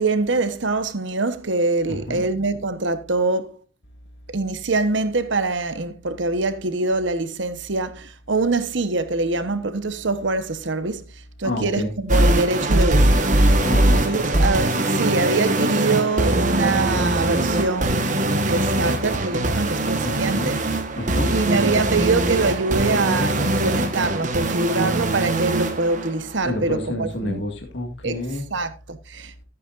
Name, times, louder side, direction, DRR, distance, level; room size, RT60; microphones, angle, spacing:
voice 1, 0.0-3.6 4.3-11.0 11.4-13.2 13.9-18.1 18.5-20.5 21.3-27.4 28.0-28.2 28.5-29.4, right 3 dB, 75° right, 1.0 m, -24 dB
voice 2, 1.9-2.2 11.4-11.9 13.6-14.3 20.0-20.6 21.0-21.4 26.4-28.4, left 1 dB, 70° left, 1.9 m, -29 dB
sound 1, 12.1-26.1, right 1 dB, 40° right, 1.2 m, -21 dB
14.5 x 8.4 x 2.5 m
head